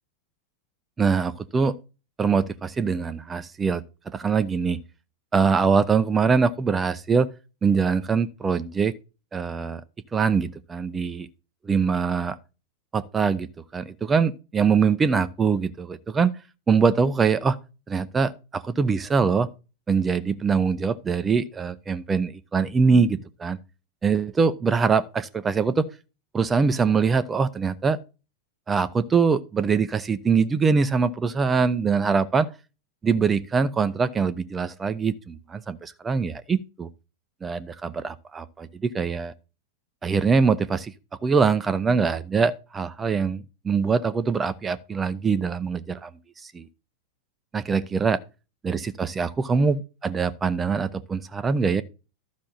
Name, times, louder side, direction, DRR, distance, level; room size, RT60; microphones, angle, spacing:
voice 1, 1.0-1.7 2.2-3.8 4.1-4.8 5.3-7.3 7.6-8.9 9.3-9.8 10.1-11.3 11.6-12.4 12.9-16.3 16.7-17.6 17.9-19.5 19.9-23.6 24.0-25.9 26.3-28.0 28.7-32.5 33.0-36.9 37.4-39.3 40.0-40.9 41.2-46.1 46.5-46.7 47.5-48.2 48.6-51.8, right 5 dB, 15° right, 0.7 m, -23 dB
12.5 x 6.2 x 4.2 m
figure-of-eight pair, 90°, 0 cm